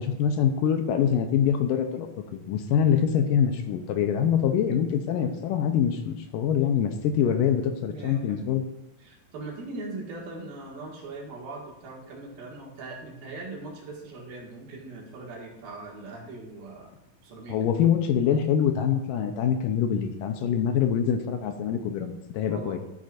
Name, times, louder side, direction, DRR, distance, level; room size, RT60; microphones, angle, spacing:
voice 1, 0.0-8.6 17.5-22.8, left 8 dB, 80° left, 6 dB, 2.3 m, -24 dB
voice 2, 7.9-8.4 9.0-16.9 17.2-17.6 22.5-22.8, right 2 dB, 80° right, -2 dB, 3.8 m, -40 dB
13.5 x 9.6 x 2.6 m, 0.87 s
omnidirectional pair, 4.1 m